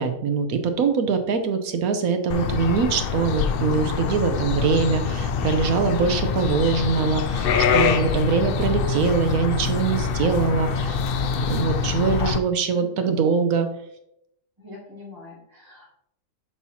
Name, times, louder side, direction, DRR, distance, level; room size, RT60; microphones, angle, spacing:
voice 1, 0.0-11.0 11.5-13.7, right 5 dB, 75° right, 7 dB, 1.2 m, -23 dB
sound 1, 2.3-12.4, left 6 dB, 80° left, 0.5 m, -24 dB
voice 2, 12.7-13.1 14.6-15.9, left 1 dB, 15° right, -7 dB, 2.5 m, -43 dB
6.5 x 5.6 x 2.9 m, 0.77 s
omnidirectional pair, 1.5 m